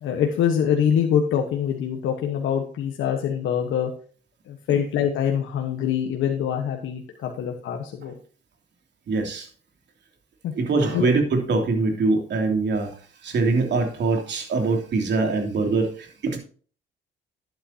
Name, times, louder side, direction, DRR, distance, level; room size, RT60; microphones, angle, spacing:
voice 1, 0.0-3.9 4.5-8.1 10.4-10.5 10.9-11.0, left 8 dB, 85° left, 2 dB, 1.4 m, -24 dB
voice 2, 9.1-9.5 10.5-12.9 13.2-16.4, right 3 dB, 60° right, 3 dB, 3.0 m, -23 dB
11.5 x 9.0 x 2.9 m, 0.41 s
cardioid pair, 90°, 20 cm